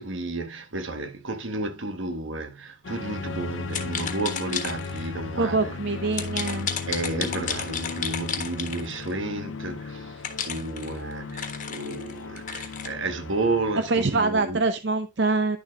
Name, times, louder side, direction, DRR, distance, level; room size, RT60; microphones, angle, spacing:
voice 1, 0.0-5.8 6.9-14.6, right 2 dB, 75° right, 1.3 m, -32 dB
sound 1, 2.8-14.5, left 4 dB, 75° left, 0.6 m, -36 dB
sound 2, 3.7-5.1 6.1-9.1 10.2-12.9, left 7 dB, 40° left, 1.3 m, -33 dB
voice 2, 5.4-6.7 13.9-15.6, right 3 dB, 60° right, 0.6 m, -24 dB
11.0 x 7.0 x 2.4 m
head